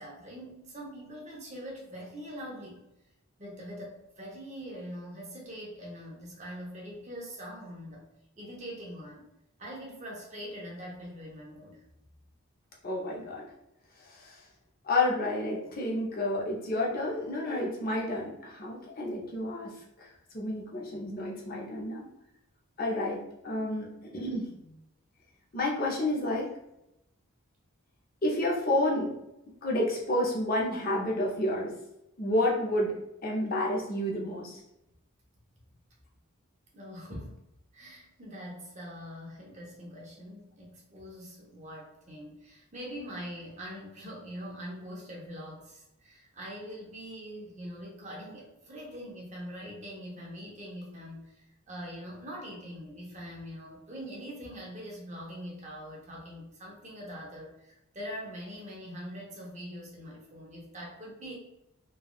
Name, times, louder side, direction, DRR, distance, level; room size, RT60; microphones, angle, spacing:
voice 1, 0.0-2.8 3.4-8.0 8.4-9.2 9.6-11.8 36.7-37.4 37.7-61.4, equal, 30° right, -3 dB, 0.7 m, -43 dB
voice 2, 12.8-13.5 14.0-14.4 14.8-19.7 20.0-20.1 20.3-22.1 22.8-23.2 23.4-23.9 24.1-24.8 25.5-26.5 28.2-29.1 29.6-31.7 32.2-32.9 33.2-34.6, left 1 dB, 40° left, -3 dB, 0.5 m, -30 dB
3.4 x 2.3 x 2.3 m, 0.86 s
head